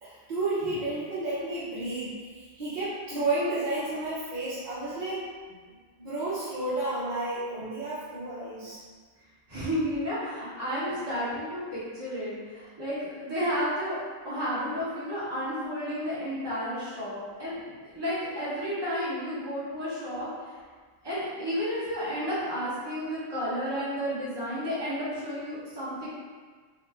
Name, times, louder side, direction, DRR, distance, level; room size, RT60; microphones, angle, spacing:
voice 1, 0.0-5.2 6.0-8.8, right 2 dB, 45° right, -13 dB, 0.9 m, -31 dB
voice 2, 9.5-14.0 14.2-20.6 21.0-26.1, equal, 25° right, -11 dB, 1.1 m, -32 dB
2.8 x 2.6 x 3.3 m, 1.5 s
omnidirectional pair, 1.1 m